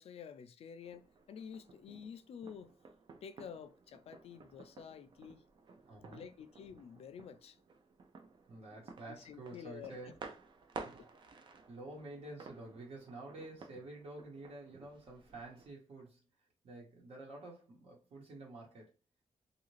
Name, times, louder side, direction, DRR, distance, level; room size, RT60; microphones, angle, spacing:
voice 1, 0.0-2.7 3.2-5.4 6.1-7.6 9.1-10.2 11.0-11.1, left 7 dB, 65° left, 0.4 m, -50 dB
sound 1, 0.8-15.7, right 4 dB, 45° right, 0.4 m, -54 dB
voice 2, 5.9-6.3 8.5-10.1 10.8-11.0 11.7-16.2 16.6-18.9, right 2 dB, 70° right, 1.1 m, -49 dB
2.7 x 2.4 x 3.1 m
wide cardioid pair, 165°, 11 cm